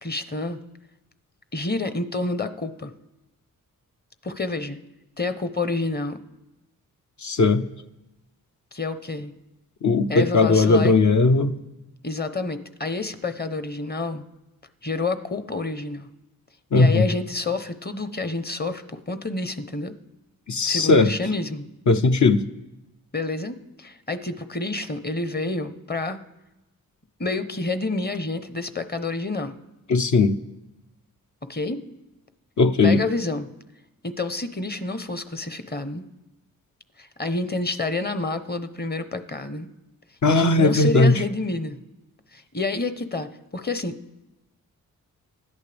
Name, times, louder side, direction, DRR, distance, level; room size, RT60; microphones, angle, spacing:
voice 1, 0.0-0.6 1.5-2.9 4.2-4.8 5.2-6.2 8.7-9.3 10.1-10.9 12.0-14.2 14.8-16.1 16.7-19.9 20.6-21.7 23.1-26.2 27.2-29.5 31.5-31.8 32.8-33.5 34.0-36.0 37.0-39.7 40.2-41.8 42.3-43.3 43.5-43.9, left 3 dB, 25° left, 10 dB, 1.0 m, -28 dB
voice 2, 7.2-7.6 9.8-11.6 16.7-17.1 20.5-21.1 21.9-22.4 29.9-30.3 32.6-33.0 40.2-41.1, left 3 dB, 55° left, 8 dB, 0.9 m, -18 dB
25.0 x 11.5 x 3.5 m, 0.98 s
cardioid pair, 65°, 35 cm